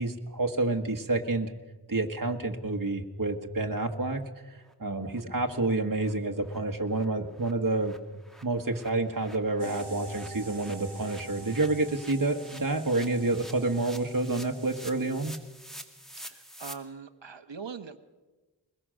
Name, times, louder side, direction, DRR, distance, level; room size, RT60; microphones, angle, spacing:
voice 1, 0.0-1.5 1.9-4.2 4.5-7.9 8.4-15.3, right 2 dB, 50° right, 3 dB, 1.5 m, -29 dB
sound 1, 3.8-3.9 4.2-4.3 4.6-4.7 5.1-5.2 5.5-5.7 6.0-6.1 6.4-6.6 6.8-16.7, equal, ahead, 2.0 m, -49 dB
sound 2, 9.6-15.2, right 3 dB, 65° right, 1.4 m, -46 dB
voice 2, 16.2-18.0, right 6 dB, 85° right, 10 dB, 1.2 m, -42 dB
22.5 x 21.0 x 6.4 m, 1.2 s
wide cardioid pair, 50°, 43 cm